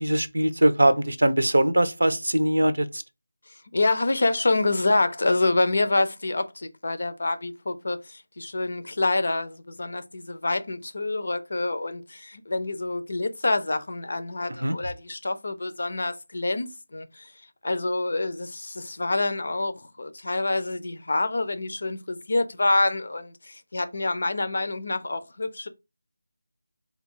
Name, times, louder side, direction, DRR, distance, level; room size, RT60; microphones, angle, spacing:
voice 1, 0.0-3.0 14.6-14.8, right 1 dB, 80° right, 0.6 m, -21 dB
voice 2, 3.7-17.3 17.6-25.7, left 2 dB, 65° left, 0.5 m, -27 dB
3.3 x 2.3 x 3.7 m
figure-of-eight pair, 165°, 0 cm